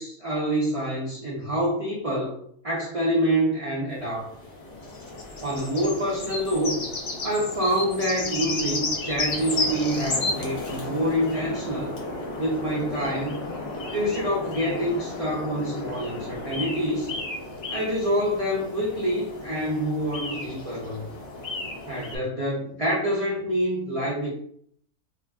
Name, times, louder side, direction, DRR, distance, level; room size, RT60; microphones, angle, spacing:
voice 1, 0.0-2.3 2.6-4.3 5.4-6.8 7.2-11.9 12.4-13.4 13.9-17.1 17.7-21.0 21.9-24.3, equal, 70° right, -7 dB, 0.3 m, -26 dB
sound 1, 4.0-22.2, left 2 dB, 55° left, 0.8 m, -33 dB
2.8 x 2.4 x 2.2 m, 0.66 s
omnidirectional pair, 1.5 m